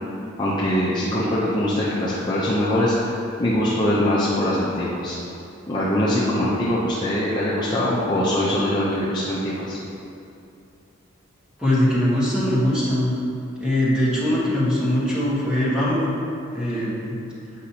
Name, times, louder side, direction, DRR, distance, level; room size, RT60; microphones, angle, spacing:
voice 1, 0.4-5.2 5.7-9.8, left 1 dB, 20° left, -9 dB, 0.6 m, -22 dB
voice 2, 11.6-13.1 13.6-16.1 16.5-17.1, left 1 dB, 5° right, -9 dB, 1.2 m, -21 dB
8.3 x 5.1 x 2.8 m, 2.7 s
head